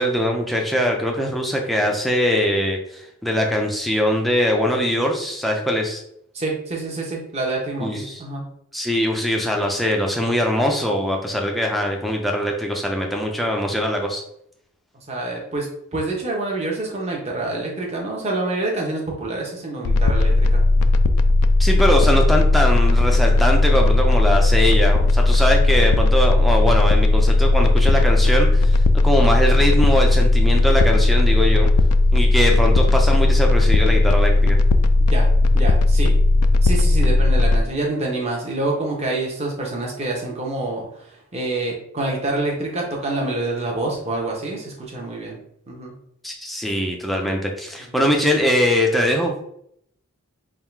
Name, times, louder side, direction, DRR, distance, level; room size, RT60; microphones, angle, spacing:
voice 1, 0.0-6.0 7.8-8.2 8.7-14.2 21.6-31.7 32.1-34.6 46.2-49.5, equal, ahead, 0 dB, 0.4 m, -22 dB
voice 2, 6.3-8.4 15.1-15.7 15.9-20.6 35.0-35.3 35.5-36.1 36.6-41.0 41.3-45.4 45.7-45.9 47.8-48.0, right 2 dB, 30° right, -1 dB, 0.9 m, -27 dB
sound 1, 19.8-37.6, left 2 dB, 90° left, 0.3 m, -16 dB
3.7 x 2.4 x 4.4 m, 0.74 s
head